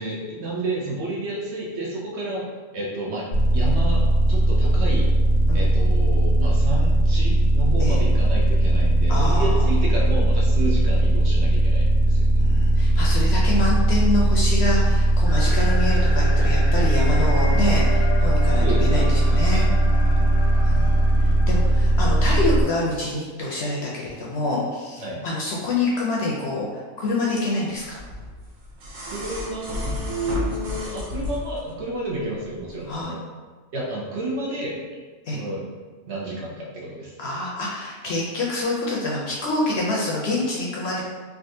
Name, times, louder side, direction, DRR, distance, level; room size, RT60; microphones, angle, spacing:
voice 1, 0.0-2.5 2.7-3.3 3.5-4.0 4.3-5.1 5.5-12.3 18.6-19.7 25.0-25.2 29.1-33.2 33.7-34.8 35.3-35.7 36.1-37.1, right 2 dB, 65° right, -4 dB, 0.8 m, -31 dB
sound 1, 3.3-22.6, right 1 dB, 90° left, 1.0 m, -19 dB
voice 2, 9.1-9.6 12.4-19.7 20.6-20.9 21.2-28.0 32.9-33.1 35.3-35.4 37.2-41.0, left 2 dB, 65° left, -4 dB, 0.7 m, -26 dB
sound 2, 15.3-22.4, left 1 dB, 35° right, 0.5 m, -34 dB
sound 3, 27.9-31.7 33.0-33.1, equal, 85° right, 1.1 m, -30 dB
3.4 x 2.4 x 2.6 m, 1.4 s
omnidirectional pair, 1.4 m